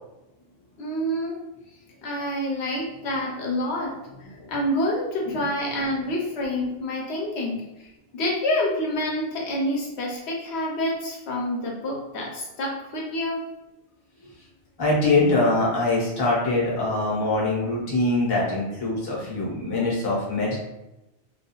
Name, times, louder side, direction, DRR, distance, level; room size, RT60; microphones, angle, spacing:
voice 1, 0.8-1.4 2.0-7.9 8.1-13.4, left 1 dB, 70° left, -2 dB, 0.8 m, -28 dB
voice 2, 4.4-4.7 5.2-5.5 14.8-20.6, left 2 dB, 25° left, -5 dB, 0.6 m, -23 dB
2.3 x 2.3 x 2.9 m, 0.94 s
omnidirectional pair, 1.2 m